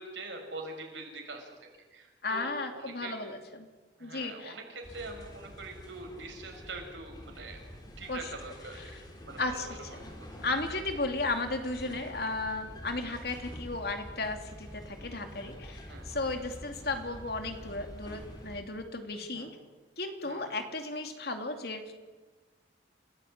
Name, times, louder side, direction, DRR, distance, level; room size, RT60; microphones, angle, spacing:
voice 1, 0.0-1.5 1.9-3.2 4.0-7.6 8.0-9.0 9.3-10.3 10.7-10.8 13.1-13.2 15.8-16.1 19.2-19.5 20.2-20.6, right 3 dB, 90° right, 3 dB, 6.2 m, -44 dB
voice 2, 2.2-3.7 4.0-4.5 8.1-8.2 8.8-9.0 9.4-9.7 10.0-10.1 10.4-19.5 20.0-21.9, left 3 dB, 60° left, 5 dB, 2.7 m, -35 dB
sound 1, 4.8-18.6, equal, 25° left, 4.3 m, -47 dB
29.0 x 16.5 x 8.8 m, 1.3 s
head